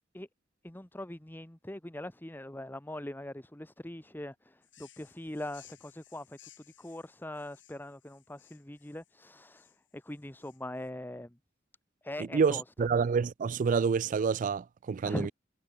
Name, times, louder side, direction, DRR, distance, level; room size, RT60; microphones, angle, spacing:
voice 1, 0.6-6.4 6.8-11.4 12.0-12.6 15.0-15.3, left 1 dB, 10° left, 1.1 m, -41 dB
sound 1, 4.6-10.9, left 12 dB, 90° left, 7.2 m, -60 dB
voice 2, 12.3-15.3, right 5 dB, 45° right, 0.3 m, -28 dB
head